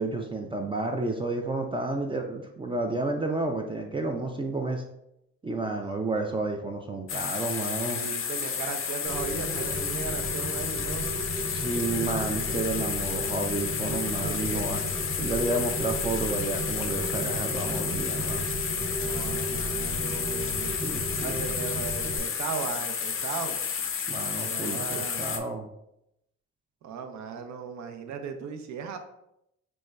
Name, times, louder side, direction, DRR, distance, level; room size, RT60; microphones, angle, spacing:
voice 1, 0.0-4.8 5.4-8.0 11.5-14.8 15.2-18.5 20.6-21.4 24.1-25.7, right 2 dB, 20° right, 2 dB, 0.3 m, -31 dB
voice 2, 5.6-6.4 8.0-11.1 14.2-14.6 19.0-20.8 21.2-23.6 24.4-25.2 26.8-29.0, right 6 dB, 70° right, 5 dB, 0.5 m, -37 dB
sound 1, 7.1-25.4, left 7 dB, 45° left, 0.5 m, -31 dB
Rain, 9.0-22.2, right 1 dB, 35° right, 0.8 m, -34 dB
5.1 x 2.1 x 2.3 m, 0.82 s
cardioid pair, 90°, 30 cm